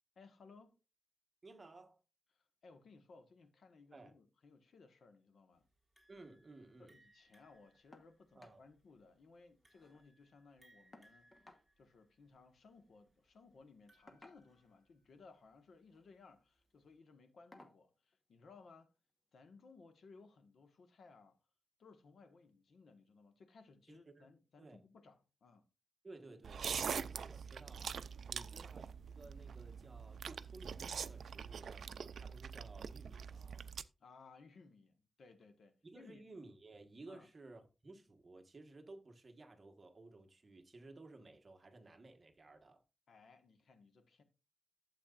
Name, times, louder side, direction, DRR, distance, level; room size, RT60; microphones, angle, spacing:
voice 1, 0.1-0.8 2.3-5.7 6.8-18.9 19.3-21.4 21.8-25.7 28.3-28.5 34.0-36.2 37.1-37.3 43.1-44.2, left 4 dB, 80° left, 1.4 m, -62 dB
voice 2, 1.4-2.0 3.9-4.1 6.1-6.9 8.3-8.6 23.9-24.3 24.6-24.8 26.0-28.8 29.1-33.7 35.8-42.8, right 2 dB, 30° right, 1.3 m, -56 dB
sound 1, 6.0-15.2, right 1 dB, 5° right, 3.5 m, -71 dB
sound 2, 7.9-8.1 8.4-8.6 9.0-9.1 9.4-10.1 10.9-11.7 12.9-13.1 14.1-14.7 15.8-16.1 16.5-16.7 17.5-17.8 19.1-19.2 19.7-19.8, left 2 dB, 25° left, 1.3 m, -61 dB
sound 3, 26.4-33.8, right 6 dB, 85° right, 0.4 m, -44 dB
12.0 x 7.7 x 2.5 m
wide cardioid pair, 145°, 0 cm